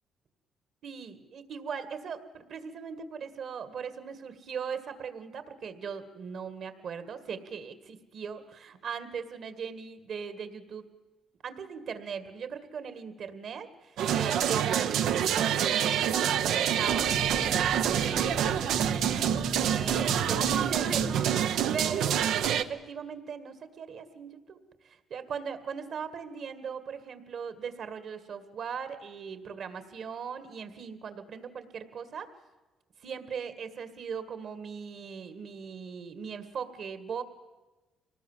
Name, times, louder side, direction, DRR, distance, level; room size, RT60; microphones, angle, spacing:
voice 1, 0.8-10.8 11.4-19.0 19.6-21.3 21.7-32.3 33.0-37.2, right 6 dB, 65° right, 11 dB, 2.0 m, -39 dB
sound 1, 14.0-22.6, right 9 dB, 85° right, 0.8 m, -27 dB
sound 2, 16.9-21.3, left 1 dB, 15° left, 0.9 m, -39 dB
25.0 x 19.0 x 7.4 m, 1.1 s
cardioid pair, 90°, 0 cm